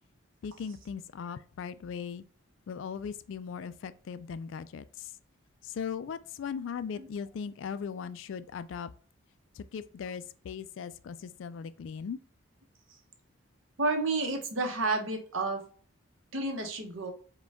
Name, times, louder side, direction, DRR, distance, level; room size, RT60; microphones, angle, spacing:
voice 1, 0.4-2.2 2.7-4.8 5.8-8.9 9.6-12.2, left 6 dB, 65° left, 0.3 m, -38 dB
voice 2, 13.8-15.6 16.3-17.1, right 3 dB, 70° right, 0.9 m, -30 dB
4.9 x 2.3 x 3.5 m
head